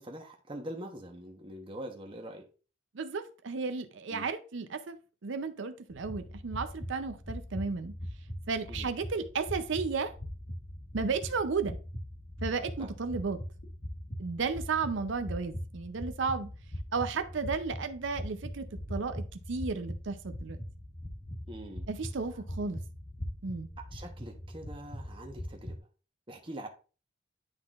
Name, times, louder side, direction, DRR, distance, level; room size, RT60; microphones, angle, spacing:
voice 1, 0.0-2.4 4.1-4.3 8.7-8.9 12.8-12.9 21.5-21.9 23.9-25.8 26.3-26.7, right 1 dB, 25° right, 0.9 m, -43 dB
voice 2, 2.9-5.0 5.2-7.9 8.5-10.1 10.9-11.8 12.4-13.4 14.2-16.5 16.9-19.2 19.5-20.6 21.9-22.8 23.4-23.7, right 4 dB, 65° right, 0.5 m, -33 dB
sound 1, 5.9-25.8, equal, 45° left, 1.3 m, -41 dB
10.5 x 3.8 x 2.4 m
head